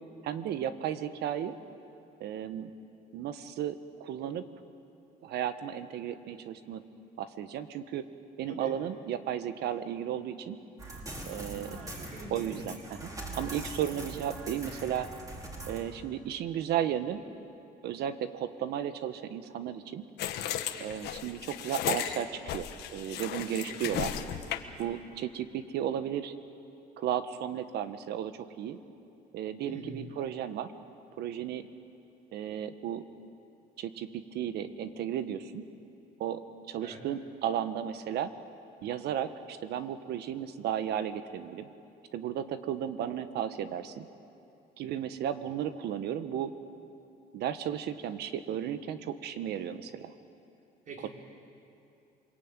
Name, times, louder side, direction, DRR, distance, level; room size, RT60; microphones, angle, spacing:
voice 1, 0.2-1.5 2.2-2.7 3.1-4.5 5.2-6.8 7.2-8.1 8.4-10.6 11.3-11.8 12.3-13.1 13.4-15.1 15.7-17.2 17.8-20.0 20.8-24.2 24.8-26.3 27.0-28.8 29.3-30.7 31.2-31.7 32.3-33.0 33.8-35.6 36.2-36.4 36.7-38.3 38.8-41.7 42.1-44.1 44.8-46.5 47.3-50.1, right 10 dB, 75° right, 10 dB, 1.4 m, -34 dB
sound 1, 10.8-15.8, right 2 dB, 20° right, 4.7 m, -42 dB
voice 2, 11.3-12.7 13.1-13.4 23.7-24.1 29.7-30.0 36.8-37.0 50.9-51.1, right 3 dB, 50° right, -1 dB, 5.9 m, -45 dB
sound 2, 20.2-24.8, left 11 dB, 80° left, 1.6 m, -35 dB
28.5 x 22.0 x 9.1 m, 2.7 s
cardioid pair, 110°, 17 cm